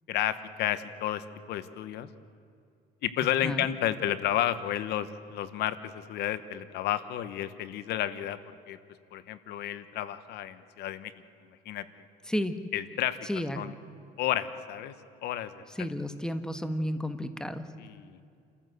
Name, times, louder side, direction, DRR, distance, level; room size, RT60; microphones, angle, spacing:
voice 1, 0.1-2.1 3.0-8.8 9.1-11.1 11.6-11.8 12.7-13.2 13.5-13.7 14.2-14.9 15.2-15.6 17.8-18.2, left 12 dB, 80° left, 14 dB, 1.1 m, -31 dB
voice 2, 13.3-13.6 15.8-17.6, equal, 5° left, 9 dB, 1.4 m, -32 dB
29.0 x 14.5 x 7.9 m, 2.5 s
cardioid pair, 110°, 17 cm